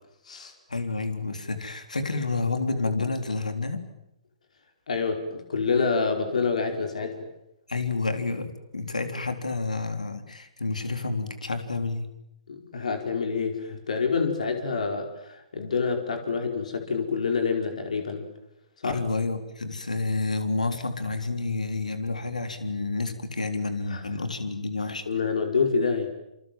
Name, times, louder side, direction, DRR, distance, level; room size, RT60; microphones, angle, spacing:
voice 1, 0.7-3.8 7.7-12.1 18.8-25.1, left 3 dB, 90° left, 8 dB, 3.9 m, -29 dB
voice 2, 4.9-7.3 12.5-18.3 18.8-19.0 23.9-24.0 25.1-26.1, left 5 dB, 70° left, 5 dB, 4.8 m, -27 dB
28.0 x 26.5 x 7.7 m, 0.84 s
hypercardioid pair, 130°, 4 cm